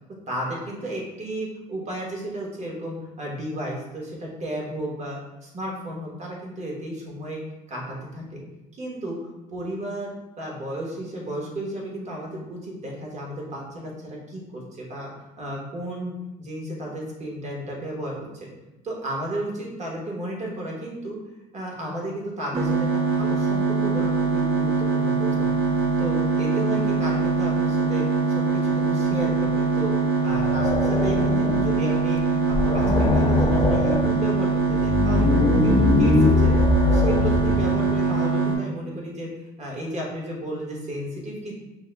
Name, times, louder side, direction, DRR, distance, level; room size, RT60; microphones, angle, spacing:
voice 1, 0.3-7.4 7.7-8.4 8.7-18.5 18.8-21.2 21.5-25.6 26.0-32.2 32.5-36.5 36.9-39.3 39.6-41.5, right 1 dB, 40° right, -2 dB, 1.2 m, -33 dB
sound 1, 22.5-38.5, right 4 dB, 60° right, 1.4 m, -23 dB
sound 2, 30.3-31.8 32.2-32.3 32.5-34.1 34.7-37.8, left 3 dB, 25° left, 0.4 m, -22 dB
5.3 x 2.1 x 3.4 m, 1.0 s
cardioid pair, 110°, 17 cm